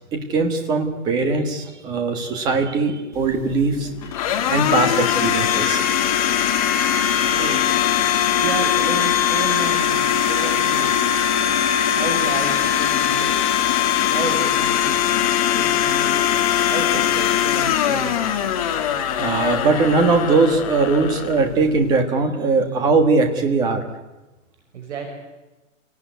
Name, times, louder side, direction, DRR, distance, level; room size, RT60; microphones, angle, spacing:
voice 1, 0.1-3.9 4.5-5.8 19.2-23.8, right 3 dB, 10° right, 6 dB, 1.6 m, -20 dB
Domestic sounds home sounds, 3.1-22.0, left 10 dB, 25° left, 1.9 m, -21 dB
voice 2, 7.3-7.7 8.3-11.1 11.9-13.4 14.1-15.0 15.4-16.2 16.6-18.2 24.7-25.1, right 4 dB, 55° right, 3 dB, 5.5 m, -31 dB
28.0 x 18.5 x 9.4 m, 1.1 s
hypercardioid pair, 180°, 40 cm